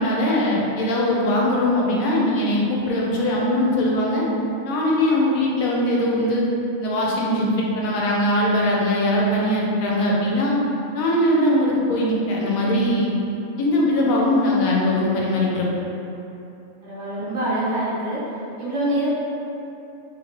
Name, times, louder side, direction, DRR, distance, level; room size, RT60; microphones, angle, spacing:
voice 1, 0.0-4.3 4.6-6.4 6.8-10.5 10.9-13.1 13.6-15.7, left 1 dB, 80° left, -3 dB, 1.0 m, -21 dB
voice 2, 16.8-18.2 18.6-19.1, right 1 dB, 60° right, -9 dB, 1.0 m, -25 dB
3.0 x 2.7 x 2.9 m, 2.8 s
omnidirectional pair, 1.5 m